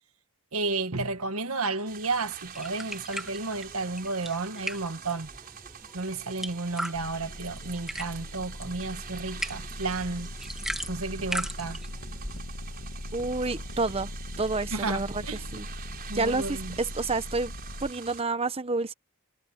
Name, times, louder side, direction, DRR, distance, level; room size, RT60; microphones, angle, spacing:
voice 1, 0.5-5.3 5.9-10.3 10.9-11.8 14.7-15.4 16.1-16.8, right 3 dB, 75° right, 1.7 m, -32 dB
sound 1, 1.9-18.2, right 8 dB, 45° right, 5.1 m, -45 dB
sound 2, 2.5-12.4, equal, ahead, 1.6 m, -39 dB
sound 3, 6.9-17.9, left 1 dB, 65° left, 1.5 m, -40 dB
voice 2, 13.1-14.1 14.4-15.2 15.5-15.7 16.1-17.5 17.8-18.9, right 3 dB, 25° right, 0.9 m, -29 dB
head